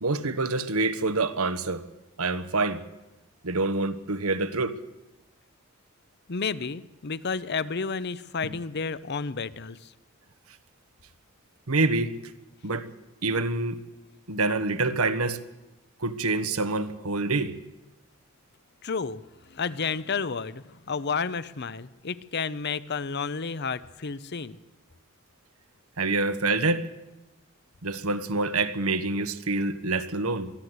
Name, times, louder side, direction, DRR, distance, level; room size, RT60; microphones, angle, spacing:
voice 1, 0.0-1.8 2.2-2.8 3.4-4.8 11.7-12.1 12.6-12.9 13.2-13.8 14.3-15.4 16.0-17.5 26.0-26.8 27.8-30.5, right 3 dB, 80° right, 12 dB, 1.3 m, -26 dB
voice 2, 6.3-9.9 18.8-24.6, left 5 dB, 50° left, 16 dB, 0.7 m, -31 dB
23.0 x 14.0 x 8.1 m, 1.0 s
head